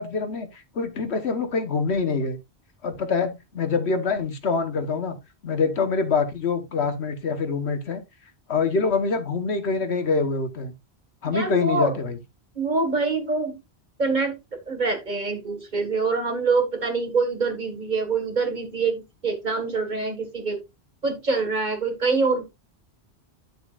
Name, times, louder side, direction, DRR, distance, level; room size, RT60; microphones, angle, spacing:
voice 1, 0.0-2.4 2.8-5.2 5.4-8.0 8.5-10.7 11.2-12.2, left 4 dB, 85° left, 1.5 m, -25 dB
voice 2, 11.2-12.0 12.6-13.6 14.0-14.4 14.7-20.6 21.0-22.4, right 4 dB, 45° right, 1.9 m, -25 dB
10.5 x 6.8 x 2.5 m
omnidirectional pair, 1.1 m